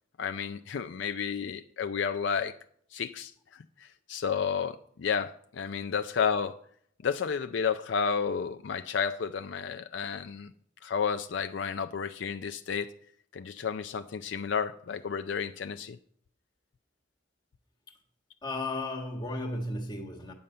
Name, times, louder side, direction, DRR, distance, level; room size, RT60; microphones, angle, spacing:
voice 1, 0.2-2.5 2.9-6.6 7.0-10.5 10.8-12.9 13.3-16.0, left 6 dB, 70° left, 0.4 m, -31 dB
voice 2, 18.4-20.3, left 2 dB, 20° left, 1.3 m, -34 dB
8.8 x 5.5 x 7.7 m
head